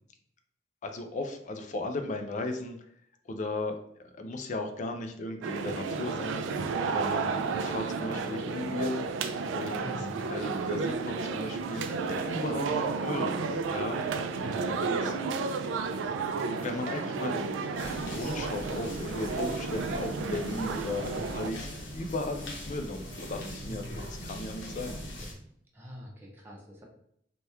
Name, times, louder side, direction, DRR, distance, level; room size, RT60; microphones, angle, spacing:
voice 1, 0.8-2.8 3.3-3.8 4.1-6.4 6.8-9.0 9.5-9.8 10.3-13.3 13.7-14.0 14.8-15.2 16.5-25.3, left 2 dB, 40° left, 5 dB, 0.4 m, -36 dB
sound 1, 5.4-21.5, right 4 dB, 85° right, 0.3 m, -32 dB
voice 2, 9.8-10.3 14.3-14.7 23.6-24.1 25.7-26.8, left 1 dB, 10° right, -3 dB, 0.6 m, -43 dB
sound 2, 17.8-25.3, equal, 70° left, 0.8 m, -41 dB
2.9 x 2.2 x 3.4 m, 0.71 s
head